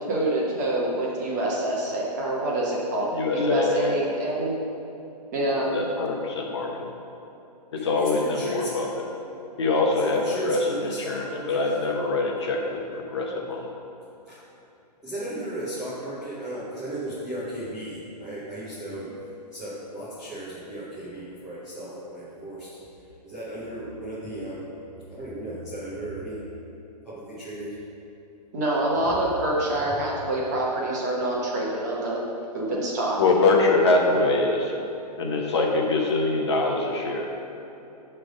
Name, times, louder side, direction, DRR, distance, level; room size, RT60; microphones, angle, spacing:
voice 1, 0.1-4.6 5.3-5.7 28.5-32.2 32.5-33.2, right 1 dB, 25° right, -4 dB, 1.1 m, -26 dB
voice 2, 3.1-3.9 5.7-6.7 7.7-8.9 9.6-13.7 33.2-34.7 35.2-37.3, left 3 dB, 40° left, 0 dB, 0.9 m, -24 dB
voice 3, 7.9-8.7 10.0-11.8 15.0-19.1 19.5-22.7 23.2-24.6 25.1-26.4 27.1-27.7 29.7-29.8, right 1 dB, 5° right, -14 dB, 0.7 m, -35 dB
10.0 x 3.4 x 5.2 m, 3.0 s
hypercardioid pair, 170°, 21 cm